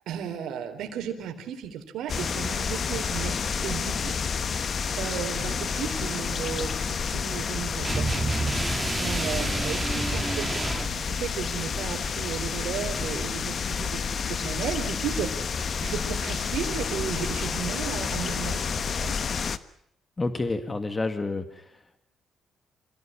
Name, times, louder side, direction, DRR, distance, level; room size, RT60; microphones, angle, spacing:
voice 1, 0.1-4.1 4.7-8.3 9.0-10.5 10.8-19.1, right 8 dB, 80° right, 5 dB, 4.0 m, -34 dB
sound 1, 2.1-19.6, left 6 dB, 50° left, 1.2 m, -30 dB
sound 2, 7.8-10.9, right 2 dB, 15° right, 2.7 m, -29 dB
voice 2, 20.2-22.0, left 3 dB, 25° left, 8 dB, 2.0 m, -30 dB
26.5 x 17.5 x 8.9 m, 0.72 s
cardioid pair, 90°, 0 cm